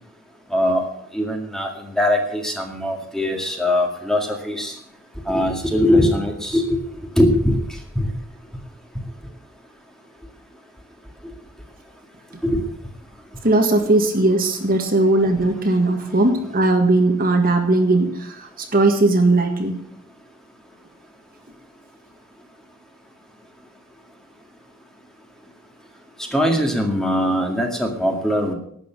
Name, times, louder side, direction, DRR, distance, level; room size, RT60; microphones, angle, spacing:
voice 1, 0.5-4.8 5.3-6.8 7.2-7.6 8.0-8.1 12.4-12.6 26.3-28.5, left 1 dB, ahead, 2 dB, 2.1 m, -21 dB
voice 2, 13.4-19.7, right 2 dB, 40° right, 4 dB, 1.7 m, -18 dB
12.0 x 8.4 x 8.1 m, 0.69 s
head